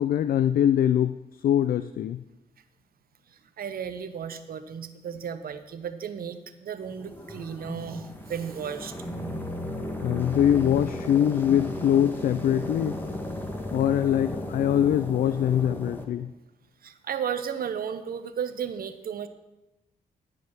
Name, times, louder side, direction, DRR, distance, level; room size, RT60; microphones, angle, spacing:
voice 1, 0.0-2.2 10.0-13.0 13.7-16.3, left 10 dB, 55° left, 12 dB, 0.4 m, -23 dB
voice 2, 3.6-8.9 16.8-19.3, right 7 dB, 55° right, 10 dB, 0.9 m, -34 dB
sound 1, 6.8-16.0, left 1 dB, 10° left, 2.0 m, -35 dB
13.5 x 5.0 x 6.0 m, 0.98 s
hypercardioid pair, 40°, 18 cm